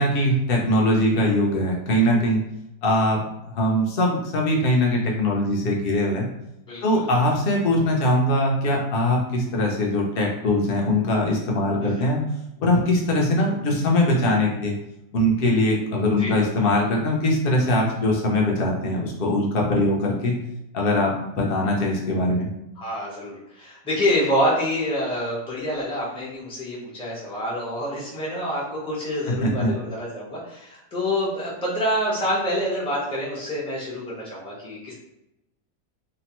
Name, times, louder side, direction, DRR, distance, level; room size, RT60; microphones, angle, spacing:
voice 1, 0.0-2.4 2.8-3.2 3.5-6.3 6.8-12.2 12.6-14.7 15.1-20.4 20.7-22.5 29.3-29.7, left 1 dB, 65° left, -1 dB, 0.5 m, -21 dB
voice 2, 6.7-7.1 11.8-12.0 16.2-16.3 22.8-34.9, equal, 5° left, -7 dB, 0.4 m, -27 dB
2.8 x 2.1 x 2.9 m, 0.89 s
omnidirectional pair, 1.7 m